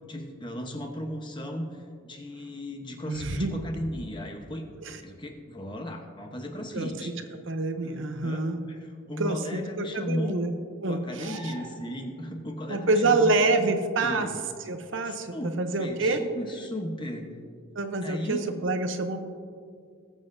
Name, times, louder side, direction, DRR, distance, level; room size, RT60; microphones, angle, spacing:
voice 1, 0.0-4.7 5.0-7.1 7.8-10.4 10.8-13.8 14.0-14.3 15.1-17.3 18.0-18.4, equal, 20° left, 3 dB, 0.9 m, -36 dB
voice 2, 3.1-3.5 4.9-5.0 6.7-6.9 7.5-8.6 9.2-10.5 10.8-11.5 12.7-14.3 14.7-16.2 17.8-19.2, right 3 dB, 60° right, 7 dB, 0.8 m, -27 dB
sound 1, 11.2-12.2 15.7-15.8, right 2 dB, 15° right, 1.7 m, -45 dB
20.0 x 7.5 x 2.7 m, 2.2 s
head